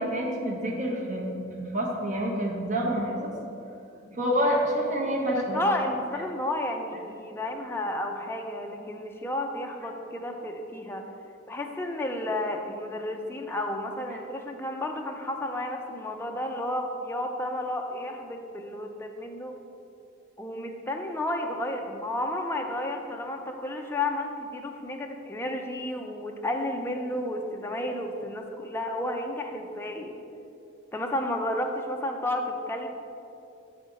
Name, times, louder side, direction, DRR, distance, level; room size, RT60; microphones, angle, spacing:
voice 1, 0.0-3.3 4.1-5.6, equal, 40° right, -1 dB, 1.0 m, -28 dB
voice 2, 5.5-11.0 11.5-19.6 20.4-30.1 30.9-32.9, left 1 dB, 10° left, 2 dB, 0.3 m, -32 dB
6.4 x 4.9 x 3.9 m, 2.7 s
head